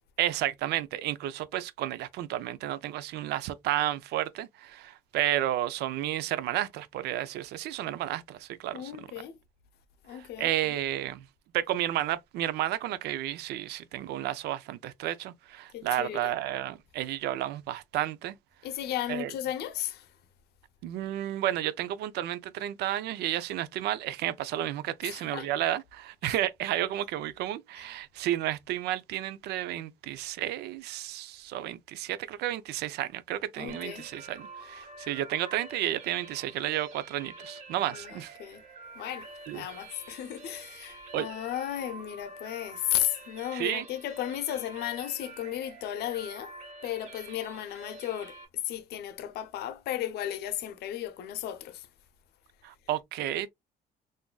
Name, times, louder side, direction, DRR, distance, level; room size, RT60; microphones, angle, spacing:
voice 1, 0.2-8.9 10.1-11.2 11.5-18.4 19.1-19.3 20.8-38.4 39.5-39.7 41.1-41.3 43.5-43.8 52.6-53.5, right 13 dB, 80° right, 0.5 m, -32 dB
voice 2, 8.7-9.4 10.0-10.7 15.7-16.3 18.6-20.1 25.0-25.5 27.8-27.9 33.6-34.1 37.9-38.6 39.0-46.5 46.8-48.4 48.6-51.9, left 12 dB, 75° left, 0.6 m, -35 dB
sound 1, 33.7-48.5, right 3 dB, 45° right, 1.7 m, -47 dB
3.8 x 2.5 x 2.2 m
cardioid pair, 110°, 17 cm